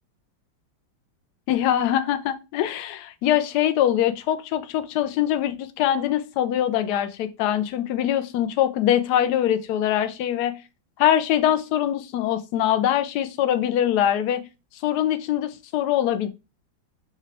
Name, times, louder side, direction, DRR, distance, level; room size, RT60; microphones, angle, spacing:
voice 1, 1.5-10.5 11.0-14.4 14.8-16.3, left 11 dB, 70° left, 1.0 m, -23 dB
4.8 x 2.3 x 4.7 m
omnidirectional pair, 2.1 m